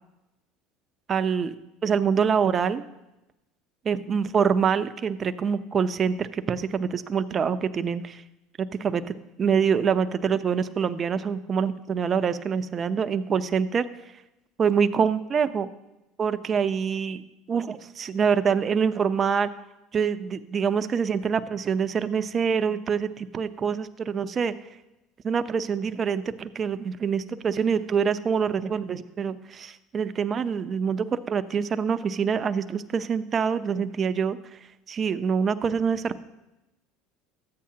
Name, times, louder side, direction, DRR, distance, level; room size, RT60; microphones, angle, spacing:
voice 1, 1.1-1.5 1.8-2.8 3.8-8.2 8.8-9.1 9.4-13.8 14.6-15.7 16.2-19.5 19.9-24.5 25.2-34.6 34.9-36.2, right 6 dB, 35° right, 12 dB, 0.7 m, -25 dB
14.0 x 8.6 x 2.9 m, 0.96 s
supercardioid pair, 95°, 0 cm